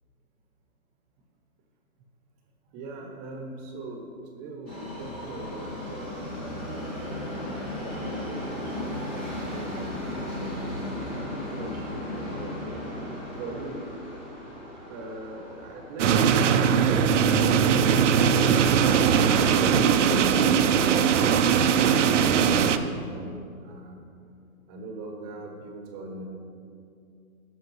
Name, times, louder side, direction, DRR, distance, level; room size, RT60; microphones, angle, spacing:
voice 1, 2.7-6.4 7.6-10.7 11.4-12.9 13.4-13.9 14.9-24.0 24.7-26.2, right 2 dB, 20° right, 2 dB, 0.9 m, -40 dB
Subway metro underground, 4.7-18.8 19.1-19.2 20.0-20.1 20.4-20.5 21.1-21.2, left 1 dB, 10° left, 0.4 m, -36 dB
sound 1, 16.0-22.8, right 7 dB, 60° right, 0.6 m, -20 dB
16.0 x 6.5 x 3.1 m, 2.4 s
hypercardioid pair, 145°, 43 cm